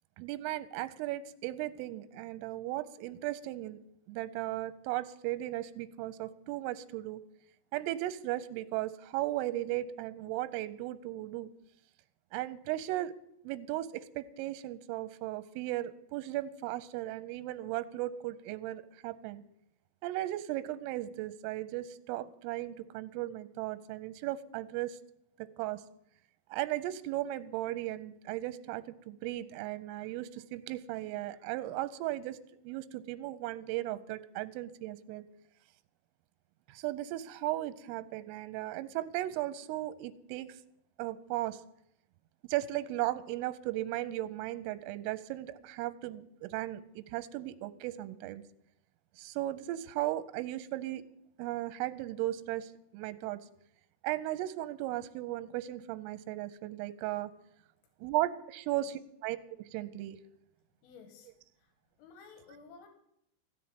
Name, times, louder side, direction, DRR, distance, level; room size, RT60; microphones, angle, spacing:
voice 1, 0.2-3.8 4.1-7.2 7.7-11.5 12.3-13.1 13.4-19.4 20.0-25.0 25.4-25.8 26.5-32.4 32.6-35.2 36.7-40.5 41.0-41.6 42.4-48.4 49.2-51.0 51.4-53.4 54.0-57.3 58.0-58.9 59.2-60.2, right 15 dB, 90° right, 14 dB, 3.3 m, -36 dB
voice 2, 60.8-61.7 62.0-62.9, left 5 dB, 85° left, 7 dB, 4.3 m, -55 dB
15.0 x 7.3 x 9.6 m, 0.75 s
omnidirectional pair, 5.7 m